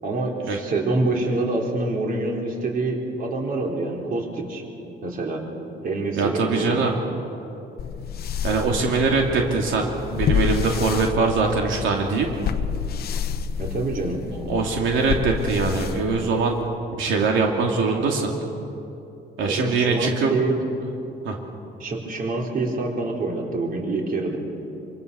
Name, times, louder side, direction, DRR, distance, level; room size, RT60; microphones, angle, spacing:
voice 1, 0.0-4.6 5.0-5.4 5.8-6.8 13.6-14.2 19.4-20.5 21.8-24.4, right 2 dB, 45° right, 0 dB, 4.0 m, -26 dB
voice 2, 6.2-6.9 8.4-12.3 14.5-16.6 16.9-18.3 19.4-20.3 21.2-21.4, right 4 dB, 85° right, 1 dB, 2.7 m, -22 dB
sound 1, 7.8-16.7, left 7 dB, 50° left, 1.0 m, -29 dB
27.0 x 26.0 x 7.0 m, 2.8 s
cardioid pair, 175°, 20 cm